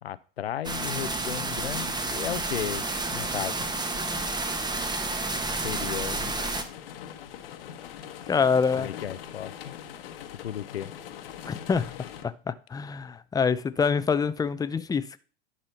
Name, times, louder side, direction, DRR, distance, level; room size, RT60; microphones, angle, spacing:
voice 1, 0.0-2.9 3.1-3.7 5.5-6.3 8.8-9.8 10.3-10.9, left 10 dB, 85° left, 0.6 m, -35 dB
sound 1, 0.6-6.6, right 2 dB, 15° right, 1.3 m, -30 dB
sound 2, 6.2-12.2, left 10 dB, 70° left, 1.2 m, -42 dB
voice 2, 8.3-8.9 11.5-11.9 12.2-15.2, left 5 dB, 10° left, 0.6 m, -26 dB
11.0 x 5.5 x 4.2 m
hypercardioid pair, 85°, 30 cm